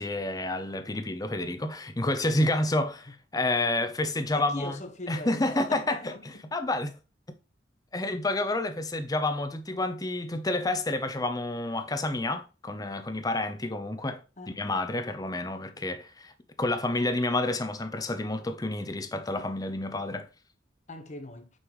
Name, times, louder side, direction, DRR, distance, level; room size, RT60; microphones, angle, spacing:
voice 1, 0.0-4.7 5.1-6.1 6.5-6.9 7.9-14.2 14.5-16.3 16.6-20.3, left 2 dB, 20° left, 0.7 m, -29 dB
voice 2, 4.3-6.5 14.4-14.6 20.9-21.5, left 2 dB, 40° left, 1.1 m, -40 dB
6.3 x 5.5 x 3.1 m
head